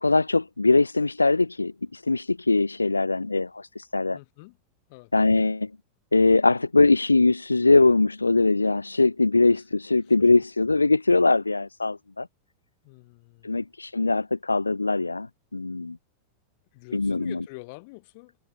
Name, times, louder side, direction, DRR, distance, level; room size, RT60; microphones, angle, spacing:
voice 1, 0.0-4.2 5.1-5.7 6.1-12.3 13.4-15.3 15.5-16.0 16.9-17.4, left 3 dB, 80° left, 0.5 m, -21 dB
voice 2, 4.1-4.6 4.9-5.1 9.5-9.6 10.0-10.1 12.8-13.6 16.7-18.4, left 28 dB, 45° left, 3.6 m, -46 dB
figure-of-eight pair, 90°, 0 cm